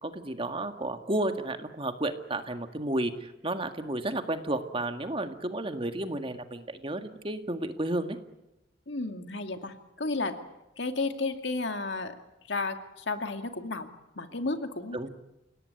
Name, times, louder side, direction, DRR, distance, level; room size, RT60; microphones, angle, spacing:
voice 1, 0.0-8.2 14.9-15.1, right 1 dB, 30° right, 7 dB, 1.8 m, -32 dB
voice 2, 8.9-10.4 10.8-12.2 12.4-13.9 14.2-15.0, left 3 dB, 65° left, 6 dB, 2.3 m, -32 dB
29.5 x 18.0 x 9.8 m, 0.94 s
head